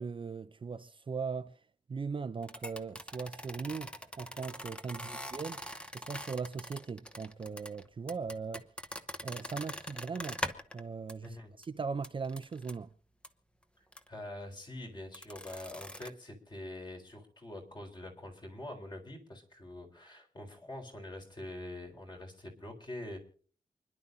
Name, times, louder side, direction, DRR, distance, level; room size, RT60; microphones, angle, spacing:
voice 1, 0.0-5.7 5.9-8.7 9.2-10.4 10.7-12.9, right 5 dB, 35° right, 0.5 m, -39 dB
sound 1, 2.4-10.8 11.1-11.3 11.6-11.7 12.0-12.7 13.2-13.3 13.9-14.1 15.1-16.1, left 1 dB, 5° left, 0.9 m, -42 dB
voice 2, 11.2-11.5 14.1-23.2, left 1 dB, 30° left, 3.9 m, -45 dB
29.0 x 11.0 x 2.7 m
wide cardioid pair, 170°, 15 cm